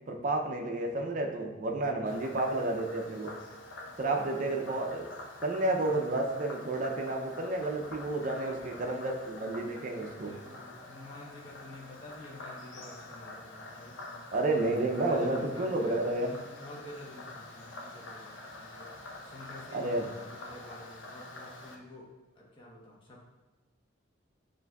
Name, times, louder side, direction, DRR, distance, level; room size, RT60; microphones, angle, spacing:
voice 1, 0.1-3.3 4.0-5.0 5.4-10.3 14.3-16.3 19.7-20.1, right 2 dB, 40° right, 1 dB, 0.4 m, -31 dB
voice 2, 1.9-2.8 3.9-4.9 5.7-6.2 8.1-9.1 10.2-14.2 14.8-23.2, left 1 dB, 25° left, -4 dB, 0.9 m, -50 dB
Frog, 2.1-21.8, left 2 dB, 70° left, 0.6 m, -47 dB
6.9 x 2.6 x 2.3 m, 1.2 s
head